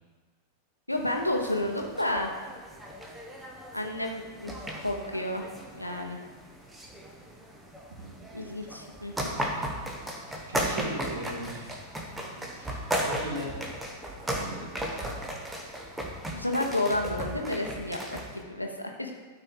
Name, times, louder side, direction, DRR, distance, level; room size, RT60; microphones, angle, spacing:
voice 1, 0.9-2.3 3.7-5.5 5.8-6.2 8.3-9.4 16.3-19.1, left 1 dB, 85° left, 2 dB, 1.0 m, -31 dB
sound 1, 0.9-18.4, right 1 dB, 10° right, 1.1 m, -36 dB
voice 2, 7.9-8.7 10.5-11.8 12.3-13.7 14.3-15.2, right 1 dB, 65° right, -3 dB, 2.5 m, -40 dB
12.5 x 4.7 x 3.8 m, 1.5 s
figure-of-eight pair, 90°, 0 cm